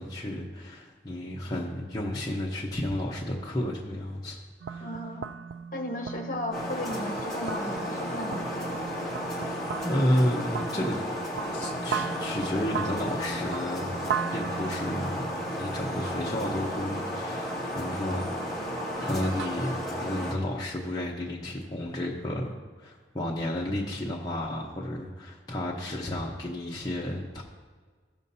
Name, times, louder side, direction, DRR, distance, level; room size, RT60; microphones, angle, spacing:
voice 1, 0.0-4.4 4.7-4.9 9.8-11.0 11.5-14.0 14.3-18.6 19.0-27.4, left 1 dB, 20° left, -4 dB, 0.9 m, -32 dB
sound 1, 4.6-19.5, right 7 dB, 75° right, 0.3 m, -38 dB
voice 2, 4.8-5.3 5.7-8.5, left 1 dB, 45° left, 2 dB, 1.2 m, -35 dB
sound 2, 6.5-20.3, equal, 5° left, 2.0 m, -33 dB
15.0 x 7.1 x 2.7 m, 1.5 s
head